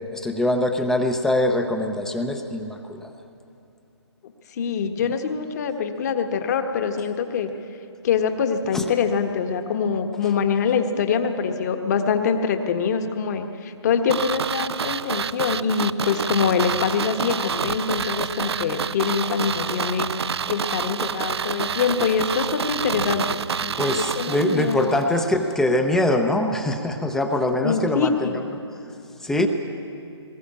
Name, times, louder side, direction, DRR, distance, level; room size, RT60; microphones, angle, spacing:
voice 1, 0.1-3.0 8.7-8.8 23.8-28.3 29.2-29.5, left 1 dB, 5° left, 5 dB, 0.7 m, -23 dB
voice 2, 4.6-7.5 8.0-20.1 20.5-25.2 27.6-28.4, left 6 dB, 35° left, 6 dB, 1.4 m, -24 dB
sound 1, 14.1-25.0 25.3-25.4, right 7 dB, 65° right, 0.5 m, -28 dB
20.0 x 18.0 x 8.6 m, 2.8 s
hypercardioid pair, 150°, 15 cm